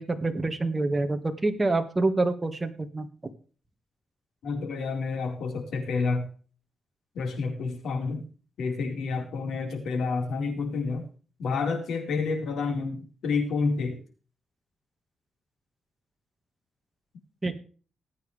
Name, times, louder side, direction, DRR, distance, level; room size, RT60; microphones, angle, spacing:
voice 1, 0.0-3.1 17.4-17.5, right 2 dB, 20° right, 7 dB, 1.8 m, -26 dB
voice 2, 4.4-6.3 7.1-8.2 8.6-11.0 11.4-14.0, left 4 dB, 80° left, 3 dB, 4.4 m, -29 dB
19.0 x 9.3 x 3.4 m, 0.39 s
cardioid pair, 125°, 0 cm